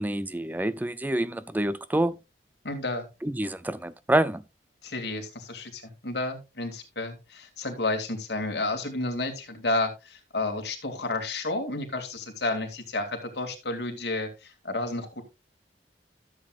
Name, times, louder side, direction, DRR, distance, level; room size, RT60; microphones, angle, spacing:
voice 1, 0.0-2.2 3.2-4.4, right 1 dB, 10° right, 0.4 m, -27 dB
voice 2, 2.6-3.0 4.8-15.2, left 2 dB, 65° left, 2.6 m, -31 dB
13.5 x 7.8 x 2.4 m
head